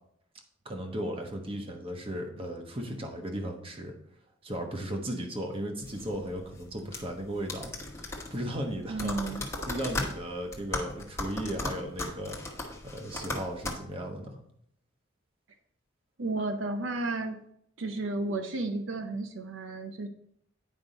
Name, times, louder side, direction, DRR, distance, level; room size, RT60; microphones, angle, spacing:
voice 1, 0.6-3.9 4.4-12.4 12.8-14.4, equal, 30° right, 3 dB, 1.2 m, -36 dB
sound 1, 5.8-13.7, left 1 dB, 15° left, 1.2 m, -37 dB
voice 2, 8.9-9.4 16.2-17.4 17.8-20.1, right 2 dB, 75° right, 5 dB, 0.7 m, -32 dB
9.4 x 5.3 x 4.1 m, 0.71 s
head